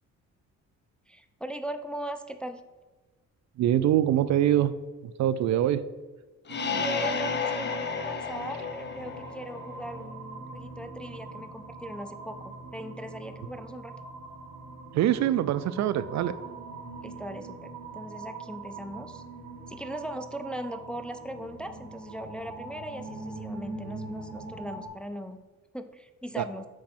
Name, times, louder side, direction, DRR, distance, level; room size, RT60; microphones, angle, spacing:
voice 1, 1.1-2.6 6.7-13.9 17.0-19.2 19.7-25.4 25.7-26.7, right 1 dB, 5° left, 9 dB, 0.4 m, -39 dB
voice 2, 3.6-4.7 5.0-5.8 14.9-16.4 26.4-26.5, right 11 dB, 65° right, 15 dB, 0.4 m, -24 dB
sound 1, 6.5-10.1, left 6 dB, 35° left, 0.8 m, -32 dB
sound 2, 6.5-24.9, right 3 dB, 85° right, 1.9 m, -42 dB
6.3 x 4.6 x 4.3 m, 1.3 s
cardioid pair, 90°, 30 cm